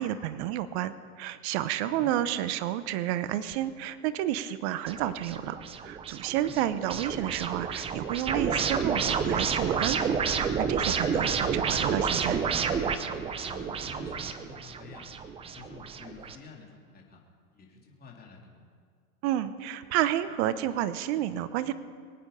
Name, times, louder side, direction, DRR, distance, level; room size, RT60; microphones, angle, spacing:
voice 1, 0.0-12.4 19.2-21.7, right 12 dB, 45° right, 14 dB, 1.0 m, -30 dB
sound 1, 4.9-16.4, right 6 dB, 15° right, 0.6 m, -30 dB
voice 2, 13.4-15.1 15.5-17.2 17.5-18.6, left 5 dB, 20° left, -2 dB, 3.3 m, -49 dB
23.5 x 8.9 x 5.6 m, 2.1 s
hypercardioid pair, 125°, 46 cm